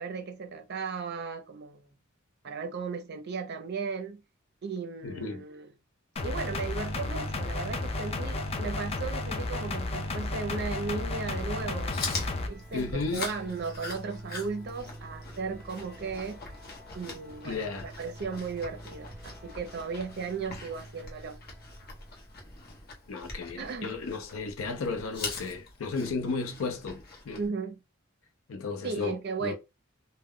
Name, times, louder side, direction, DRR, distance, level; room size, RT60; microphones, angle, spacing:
voice 1, 0.0-2.0 2.4-4.2 4.6-5.7 6.2-11.9 12.5-16.4 16.9-21.4 23.6-24.0 27.4-27.8 28.8-29.5, right 4 dB, 55° right, 0.5 m, -36 dB
voice 2, 5.0-5.4 12.7-13.2 17.4-17.9 23.1-27.4 28.5-29.2 29.4-29.5, left 4 dB, 80° left, 0.5 m, -34 dB
sound 1, 6.2-12.5, left 2 dB, 30° left, 0.4 m, -33 dB
sound 2, 6.9-22.8, right 1 dB, 10° left, 0.8 m, -49 dB
Chewing mastication, 11.6-27.5, left 3 dB, 50° left, 0.9 m, -42 dB
2.1 x 2.1 x 3.5 m
head